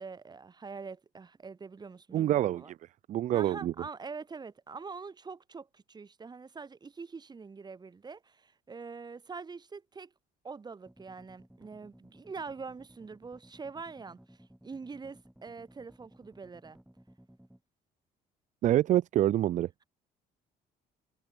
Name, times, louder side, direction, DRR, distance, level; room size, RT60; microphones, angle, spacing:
voice 1, 0.0-2.7 3.3-10.1 10.4-16.8, right 4 dB, 25° right, 1.7 m, -44 dB
voice 2, 2.1-2.8 3.1-3.7 18.6-19.7, right 13 dB, 50° right, 0.4 m, -26 dB
sound 1, 10.9-17.6, right 1 dB, 5° right, 4.4 m, -58 dB
cardioid pair, 110°, 17 cm